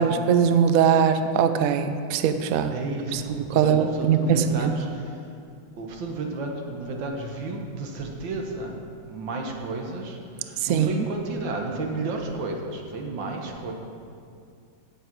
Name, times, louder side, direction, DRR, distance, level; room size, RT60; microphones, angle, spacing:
voice 1, 0.0-2.7 3.1-4.7 10.6-11.1, right 7 dB, 90° right, 10 dB, 0.7 m, -21 dB
voice 2, 2.7-5.3 5.8-8.8 9.1-13.7, right 2 dB, 70° right, 2 dB, 1.9 m, -32 dB
16.5 x 6.7 x 4.6 m, 2.4 s
omnidirectional pair, 2.2 m